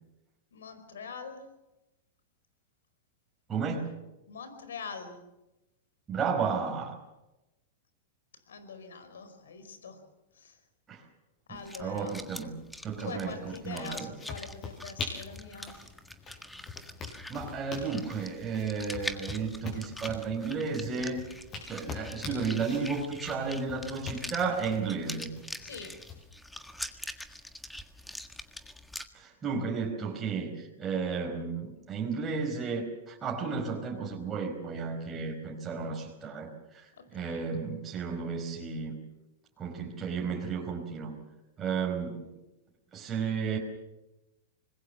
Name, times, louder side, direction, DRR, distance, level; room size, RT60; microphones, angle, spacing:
voice 1, 0.5-1.5 4.3-5.2 8.3-10.0 10.3-10.6 11.5-12.2 13.0-15.8 21.6-22.1 25.6-25.9 36.9-37.4 41.9-42.4, left 5 dB, 85° left, 10 dB, 5.0 m, -44 dB
voice 2, 3.5-3.9 6.1-7.0 10.9-11.0 11.8-12.5 12.8-14.1 17.3-21.2 21.7-25.3 29.1-39.0 39.6-41.2 41.6-42.2 42.9-43.6, right 5 dB, 20° right, -1 dB, 4.9 m, -33 dB
sound 1, 11.5-29.0, left 1 dB, 5° left, 1.6 m, -44 dB
sound 2, 14.2-26.2, left 4 dB, 30° left, 7.6 m, -44 dB
25.5 x 21.0 x 7.0 m, 0.97 s
hypercardioid pair, 120°, 0 cm